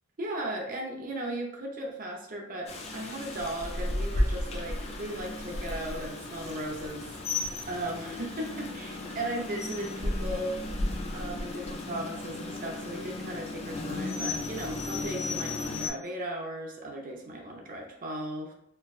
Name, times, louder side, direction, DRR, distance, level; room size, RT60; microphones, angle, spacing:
voice 1, 0.2-10.6 11.1-18.5, right 1 dB, 40° right, 1 dB, 0.6 m, -37 dB
Rain, 2.7-15.9, left 2 dB, 30° left, 0.4 m, -34 dB
4.4 x 2.2 x 2.4 m, 0.75 s
head